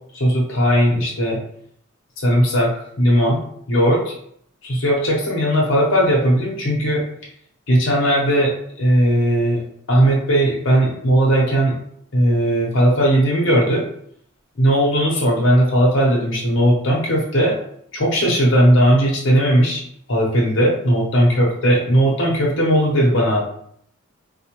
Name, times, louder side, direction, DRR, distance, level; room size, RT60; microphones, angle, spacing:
voice 1, 0.1-1.4 2.2-2.7 3.0-3.4 3.7-4.1 4.6-7.0 7.7-8.5 8.8-9.6 9.9-11.7 12.1-13.8 14.6-17.5 17.9-19.8 20.1-23.4, equal, 60° left, -3 dB, 0.8 m, -17 dB
4.0 x 2.1 x 2.9 m, 0.67 s
head